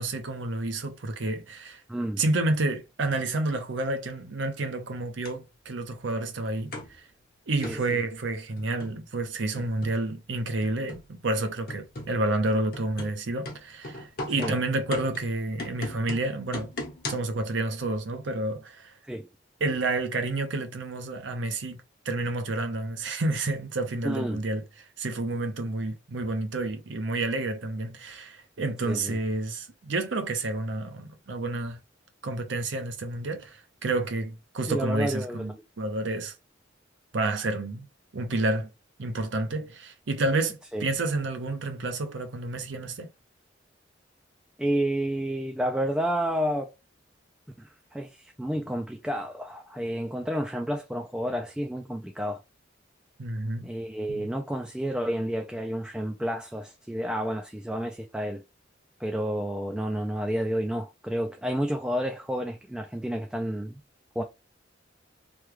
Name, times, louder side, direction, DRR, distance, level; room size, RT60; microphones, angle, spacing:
voice 1, 0.0-1.8 2.2-6.7 7.5-16.7 17.1-18.9 19.6-21.8 22.0-24.6 25.0-31.8 32.2-36.3 37.1-37.9 38.1-38.7 39.0-43.1 53.2-53.7 54.1-54.3, right 2 dB, 75° right, 0.7 m, -29 dB
voice 2, 1.9-2.2 7.6-8.0 14.4-14.6 19.0-19.3 24.0-24.4 28.8-29.2 34.7-35.5 40.7-40.9 44.6-46.7 47.6-52.4 53.6-58.4 59.0-63.8 64.2-64.3, equal, 5° right, 0.3 m, -30 dB
sound 1, 5.3-5.4 6.7-7.0 7.6-7.9 8.6-9.0 9.6-10.1 10.6-11.1 11.7-12.2 12.7-17.4, left 2 dB, 50° left, 1.0 m, -38 dB
3.2 x 2.2 x 3.2 m
head